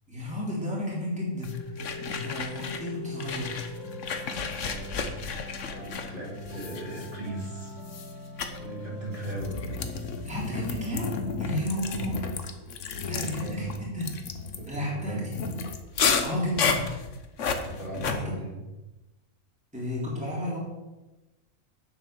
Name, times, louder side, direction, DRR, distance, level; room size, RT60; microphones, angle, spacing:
voice 1, 0.1-1.6 2.1-3.7 10.2-12.2 13.0-14.1 14.7-15.5 16.2-16.9 18.0-18.2 19.7-20.6, left 1 dB, 5° right, -5 dB, 3.3 m, -32 dB
sound 1, 1.4-2.9 3.2-7.4 7.8-8.1 8.4-8.6 9.2-18.1, left 5 dB, 60° left, 1.3 m, -32 dB
sound 2, 1.4-11.3, left 2 dB, 60° right, 3.2 m, -42 dB
voice 2, 4.6-5.1 5.6-7.7 8.5-9.6 11.7-11.9 13.1-13.8 14.6-15.3 17.5-18.6, right 1 dB, 35° right, -5 dB, 3.1 m, -38 dB
8.8 x 7.5 x 6.7 m, 1.1 s
omnidirectional pair, 1.6 m